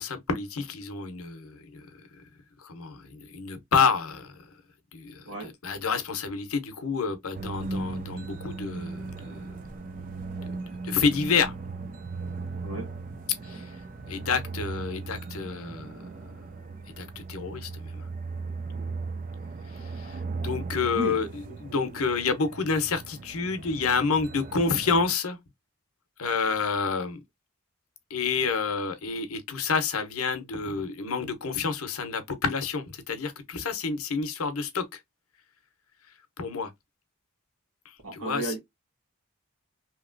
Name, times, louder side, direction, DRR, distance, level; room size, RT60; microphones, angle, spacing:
voice 1, 0.0-1.9 2.6-4.3 4.9-9.5 10.8-11.5 13.4-13.8 14.1-16.0 16.9-18.1 19.7-25.4 26.2-27.2 28.1-35.0 36.4-36.7 37.8-38.5, left 5 dB, 80° left, 0.7 m, -29 dB
sound 1, 7.3-25.1, right 3 dB, 40° right, 0.4 m, -37 dB
voice 2, 20.9-22.0 38.0-38.6, right 1 dB, 75° right, 1.4 m, -35 dB
2.9 x 2.8 x 2.5 m
head